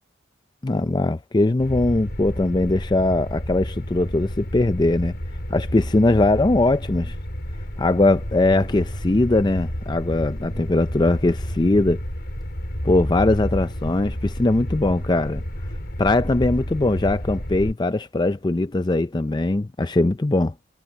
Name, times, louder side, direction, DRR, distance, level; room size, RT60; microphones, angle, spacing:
voice 1, 0.6-5.1 5.5-7.1 7.8-12.0 12.8-15.4 16.0-20.5, left 2 dB, 20° left, 0.5 m, -20 dB
sound 1, 1.6-17.7, equal, 55° left, 4.6 m, -30 dB
head